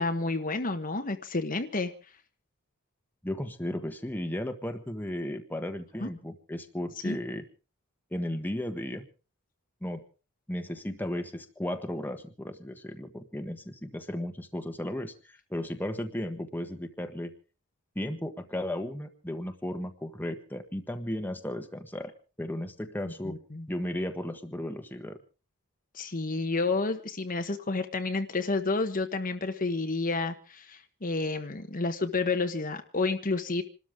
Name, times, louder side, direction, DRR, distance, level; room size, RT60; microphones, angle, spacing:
voice 1, 0.0-1.9 6.0-6.1 7.0-7.2 23.0-23.7 25.9-33.6, left 3 dB, 40° left, 7 dB, 1.2 m, -30 dB
voice 2, 3.2-7.4 8.1-9.0 9.8-10.0 10.5-17.3 17.9-22.1 22.4-23.3 23.7-25.2, left 1 dB, 10° left, 5 dB, 1.3 m, -35 dB
27.5 x 13.0 x 3.6 m, 0.35 s
head